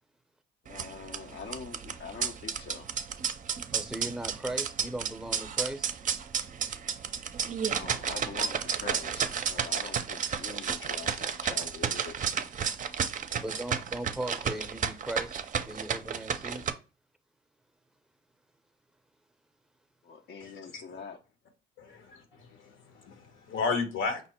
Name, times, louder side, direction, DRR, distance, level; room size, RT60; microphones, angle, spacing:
voice 1, 0.6-2.9 7.7-12.3 20.0-21.2, left 5 dB, 60° left, 0.6 m, -44 dB
sound 1, 0.7-16.7, right 7 dB, 40° right, 0.5 m, -32 dB
voice 2, 3.7-5.9 13.3-16.7, right 1 dB, 5° right, 0.7 m, -38 dB
voice 3, 20.4-20.8 21.8-21.9 22.4-24.2, left 4 dB, 80° left, 1.2 m, -33 dB
5.3 x 2.0 x 4.3 m
cardioid pair, 90°, 20 cm